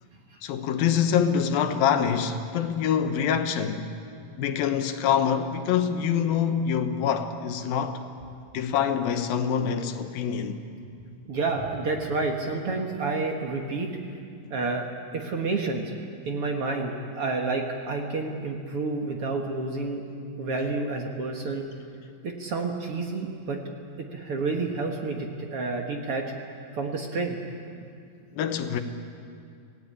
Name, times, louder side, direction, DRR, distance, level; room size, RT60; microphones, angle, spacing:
voice 1, 0.4-3.9 4.4-8.0 8.5-10.6 28.3-28.8, left 8 dB, 75° left, 2.8 m, -25 dB
voice 2, 11.3-14.0 14.5-14.9 15.1-15.8 16.3-20.0 20.4-21.6 22.2-23.6 24.1-26.2 26.7-27.4, right 3 dB, 50° right, 1.9 m, -29 dB
27.0 x 17.5 x 8.8 m
omnidirectional pair, 4.3 m